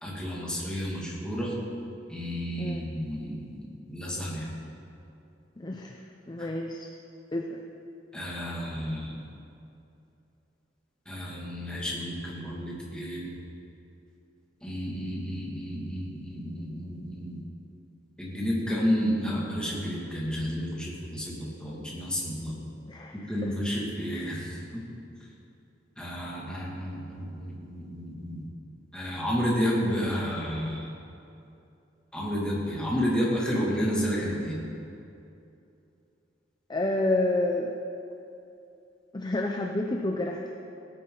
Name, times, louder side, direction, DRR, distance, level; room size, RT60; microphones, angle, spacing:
voice 1, 0.0-1.6 2.1-4.5 6.4-6.5 8.1-9.2 11.1-13.4 14.6-17.4 18.2-22.6 23.1-24.8 26.0-28.5 28.9-30.9 32.1-34.6, equal, 5° left, -5 dB, 2.3 m, -31 dB
voice 2, 5.6-6.0 6.3-6.9 7.3-7.6 22.9-23.2 24.1-24.4 36.7-37.7 39.1-40.5, left 2 dB, 25° left, 1 dB, 0.6 m, -29 dB
17.0 x 9.4 x 3.9 m, 2.7 s
head